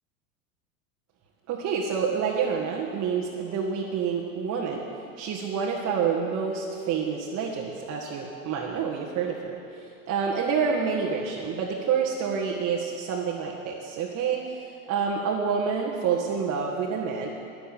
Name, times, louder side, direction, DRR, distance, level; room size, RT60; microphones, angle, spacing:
voice 1, 1.5-4.8 5.2-17.3, right 6 dB, 35° right, -2 dB, 1.9 m, -28 dB
13.0 x 10.0 x 8.7 m, 2.5 s
hypercardioid pair, 90°, 43 cm